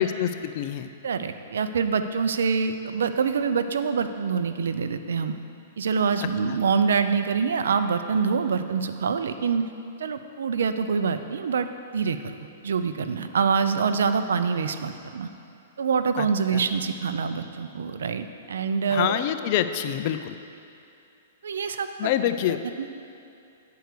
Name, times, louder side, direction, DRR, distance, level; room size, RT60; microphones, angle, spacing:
voice 1, 0.0-0.9 16.2-16.3 16.5-16.6 18.9-20.3 22.0-22.6, left 11 dB, 45° left, 10 dB, 0.4 m, -26 dB
voice 2, 1.0-5.3 5.8-9.7 10.0-11.7 11.9-12.3 12.6-15.3 15.8-19.2 21.4-22.1 22.5-22.9, right 5 dB, 80° right, 9 dB, 0.5 m, -25 dB
9.2 x 4.7 x 6.6 m, 2.7 s
hypercardioid pair, 145°, 0 cm